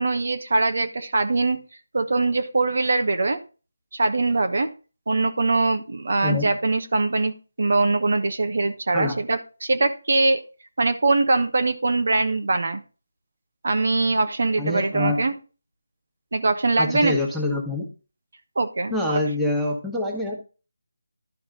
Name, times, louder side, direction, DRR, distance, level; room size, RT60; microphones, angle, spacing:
voice 1, 0.0-1.6 1.9-3.4 3.9-4.7 5.1-10.4 10.8-12.8 13.6-15.3 16.3-17.2 18.6-19.2, right 3 dB, 60° right, 7 dB, 1.1 m, -22 dB
voice 2, 14.6-15.2 16.8-17.8 18.9-20.4, left 2 dB, 5° right, -2 dB, 1.5 m, -25 dB
12.0 x 4.7 x 3.8 m, 0.34 s
figure-of-eight pair, 165°, 0 cm